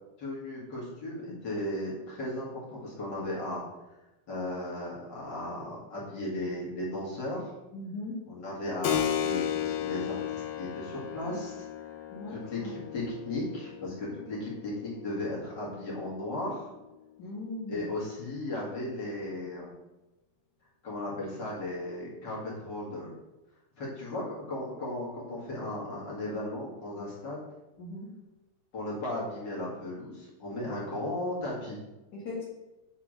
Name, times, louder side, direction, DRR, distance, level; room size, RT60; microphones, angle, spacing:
voice 1, 0.2-3.6 4.3-7.5 8.3-11.6 12.3-16.7 17.7-19.7 20.8-23.1 23.8-27.4 28.7-31.8, left 1 dB, 35° left, -5 dB, 2.1 m, -36 dB
voice 2, 7.7-8.2 12.1-12.7 17.2-17.8 27.8-28.1 32.1-32.4, left 2 dB, 55° left, -5 dB, 1.1 m, -39 dB
Keyboard (musical), 8.8-17.0, left 10 dB, 90° left, 2.6 m, -35 dB
7.0 x 3.7 x 6.2 m, 1.0 s
omnidirectional pair, 4.2 m